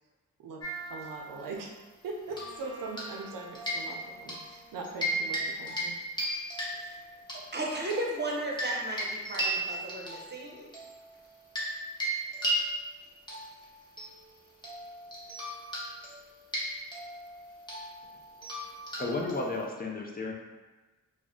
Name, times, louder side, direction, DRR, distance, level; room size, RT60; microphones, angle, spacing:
sound 1, 0.6-1.7 2.3-3.3 3.5-4.4 4.8-5.4 5.7-5.9 6.2-7.4 7.9-11.7 12.0-19.6, right 1 dB, 15° left, 1.1 m, -36 dB
voice 1, 0.9-1.7 2.0-5.9, right 3 dB, 75° right, 1 dB, 0.5 m, -41 dB
Bowed string instrument, 2.3-6.0, right 3 dB, 65° left, 0.7 m, -53 dB
voice 2, 7.3-10.7, right 1 dB, 30° right, -2 dB, 0.7 m, -35 dB
voice 3, 19.0-20.3, left 3 dB, 30° left, -1 dB, 0.4 m, -33 dB
2.3 x 2.1 x 3.6 m, 1.2 s
cardioid pair, 55°, 33 cm